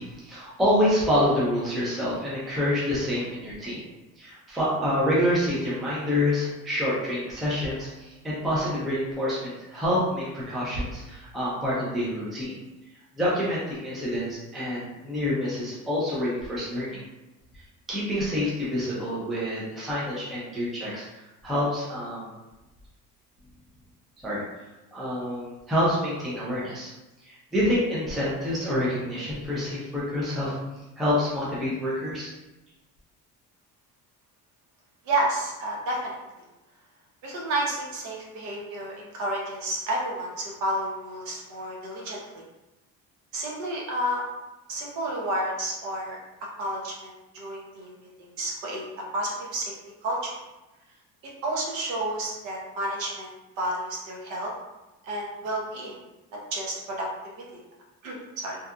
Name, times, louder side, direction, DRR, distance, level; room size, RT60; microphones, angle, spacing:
voice 1, 0.0-3.8 4.2-12.6 13.2-17.0 17.9-21.0 21.4-22.3 24.2-24.4 24.9-26.9 27.2-30.5 31.0-32.3, left 1 dB, ahead, -8 dB, 0.3 m, -27 dB
voice 2, 35.1-36.2 37.2-42.4 43.3-44.2 44.7-46.2 46.6-47.9 48.2-48.8 49.1-49.7 50.0-50.3 51.4-53.3 53.6-54.5 55.0-56.0 56.5-57.1 58.0-58.6, right 1 dB, 60° right, -2 dB, 0.7 m, -30 dB
2.7 x 2.3 x 2.3 m, 1.0 s
cardioid pair, 175°, 32 cm